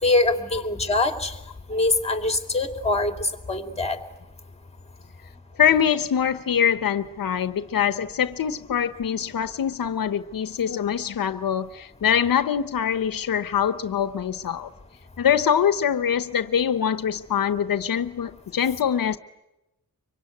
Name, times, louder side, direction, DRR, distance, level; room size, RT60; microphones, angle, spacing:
voice 1, 0.0-1.4 1.7-4.0, left 2 dB, 20° left, 2.7 m, -23 dB
voice 2, 5.6-14.7 15.2-19.2, left 8 dB, 80° left, 0.9 m, -24 dB
25.5 x 24.0 x 9.5 m
wide cardioid pair, 115°, 33 cm